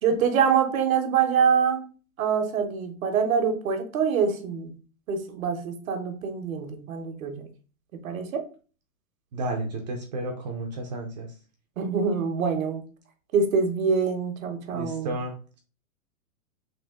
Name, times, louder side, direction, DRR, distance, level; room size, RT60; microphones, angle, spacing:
voice 1, 0.0-1.8 2.2-4.7 5.1-7.4 7.9-8.4 11.8-12.8 13.3-15.1, right 6 dB, 75° right, 5 dB, 1.1 m, -25 dB
voice 2, 9.3-11.3 14.7-15.6, right 2 dB, 35° right, 3 dB, 0.5 m, -32 dB
3.6 x 2.6 x 3.5 m, 0.37 s
hypercardioid pair, 155°, 41 cm